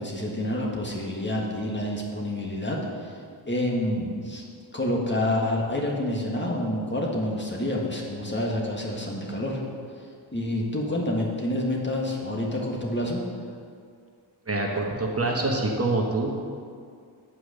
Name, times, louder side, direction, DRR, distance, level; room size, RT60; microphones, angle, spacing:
voice 1, 0.0-3.1 3.5-4.4 4.7-9.6 10.3-13.2, left 1 dB, 25° left, -2 dB, 1.8 m, -28 dB
voice 2, 14.5-16.5, right 2 dB, 30° right, -1 dB, 1.3 m, -26 dB
8.7 x 4.8 x 6.5 m, 2.2 s
cardioid pair, 60°, 46 cm